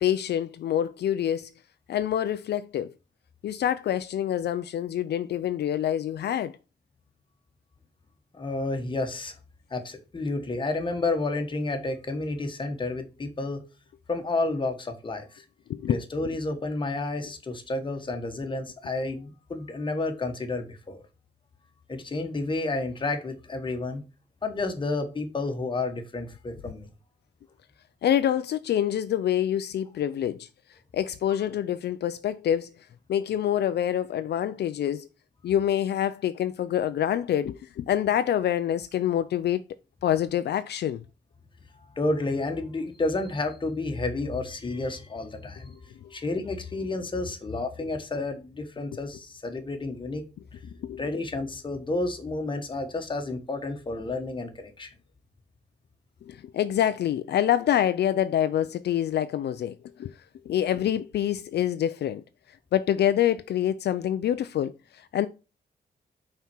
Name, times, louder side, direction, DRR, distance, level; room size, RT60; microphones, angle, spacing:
voice 1, 0.0-1.5 1.9-2.9 3.4-6.5 15.7-16.0 28.0-32.7 33.1-35.1 35.4-39.6 40.0-41.0 46.0-46.1 50.8-51.0 56.2-60.1 60.5-62.2 62.7-65.3, left 10 dB, 70° left, 0.4 m, -26 dB
voice 2, 8.3-9.3 9.7-13.6 14.1-15.4 15.9-21.0 21.9-24.0 24.4-26.9 41.8-50.2 50.5-50.6 51.0-54.9, left 2 dB, 30° left, 1.3 m, -31 dB
5.8 x 4.3 x 6.1 m
wide cardioid pair, 145°, 17 cm